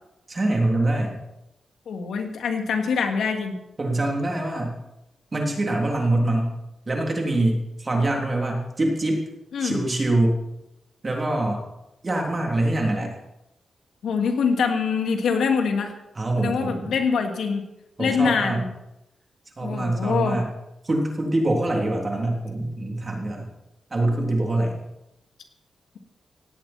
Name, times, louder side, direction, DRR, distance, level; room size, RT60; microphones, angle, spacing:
voice 1, 0.3-1.1 3.8-4.8 5.3-6.5 6.9-9.2 9.6-10.4 11.0-11.6 12.0-13.1 16.1-16.9 18.0-18.6 19.6-20.5 20.8-23.4 23.9-24.8, right 1 dB, 25° right, 0 dB, 3.3 m, -24 dB
voice 2, 1.9-3.6 9.5-9.8 14.0-15.9 16.4-17.6 18.0-18.6 19.6-20.4, left 5 dB, 80° left, 3 dB, 2.7 m, -24 dB
17.5 x 17.0 x 4.5 m, 0.88 s
wide cardioid pair, 180°, 0 cm